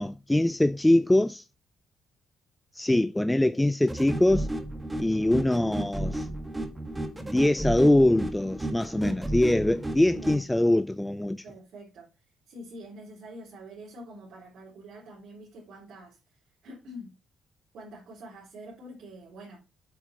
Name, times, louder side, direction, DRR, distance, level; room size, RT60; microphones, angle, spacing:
voice 1, 0.0-1.4 2.7-4.5 5.0-6.3 7.2-11.4, left 1 dB, 5° left, 0.3 m, -23 dB
sound 1, 3.9-10.4, right 1 dB, 10° right, 1.4 m, -33 dB
voice 2, 10.1-10.4 11.4-16.2 16.6-17.2 17.7-19.6, equal, 65° right, 3.7 m, -46 dB
8.2 x 6.1 x 4.0 m
cardioid pair, 145°, 0 cm